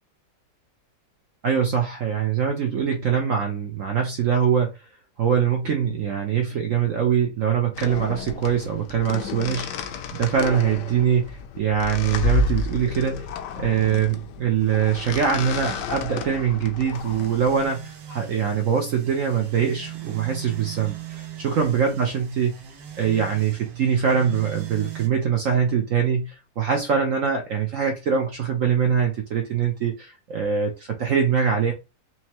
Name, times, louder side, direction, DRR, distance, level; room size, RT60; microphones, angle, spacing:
voice 1, 1.4-4.7 5.2-21.0 21.4-22.6 23.0-31.7, right 7 dB, 60° right, 0.8 m, -23 dB
sound 1, 7.8-17.6, left 4 dB, 75° left, 1.1 m, -31 dB
sound 2, 16.9-25.1, right 11 dB, 85° right, 1.5 m, -39 dB
4.4 x 2.9 x 2.9 m
omnidirectional pair, 2.0 m